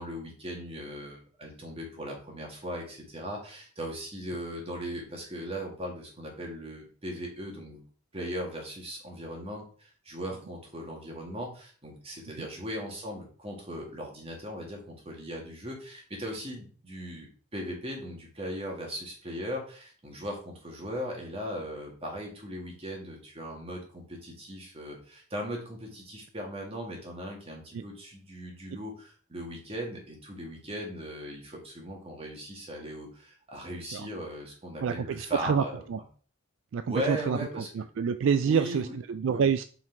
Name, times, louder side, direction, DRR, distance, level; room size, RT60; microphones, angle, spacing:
voice 1, 0.0-7.8 8.1-35.8 36.9-37.7 38.5-39.0 39.3-39.5, equal, 25° right, 0 dB, 1.9 m, -38 dB
voice 2, 34.8-35.6 35.9-36.0 36.7-37.4 37.7-39.6, right 6 dB, 60° right, 11 dB, 0.3 m, -27 dB
5.9 x 4.6 x 4.6 m, 0.41 s
head